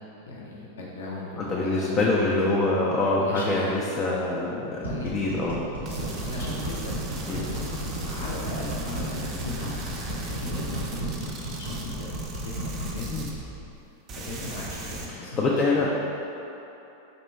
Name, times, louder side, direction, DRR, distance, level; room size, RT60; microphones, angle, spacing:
voice 1, 0.2-1.9 3.2-3.6 4.8-5.1 5.8-6.9 7.3-9.7 10.1-12.1 12.4-13.4 14.2-15.9, left 2 dB, 65° left, -5 dB, 0.7 m, -37 dB
voice 2, 1.4-5.6 7.3-7.4 13.1-13.3 15.1-15.9, left 2 dB, 25° left, -4 dB, 0.5 m, -25 dB
sound 1, 4.8-13.0, right 1 dB, 90° left, 1.5 m, -35 dB
sound 2, 5.8-13.8 14.1-15.1, right 2 dB, 30° right, 0.5 m, -36 dB
4.1 x 2.9 x 4.3 m, 3.0 s
figure-of-eight pair, 90°, 0 cm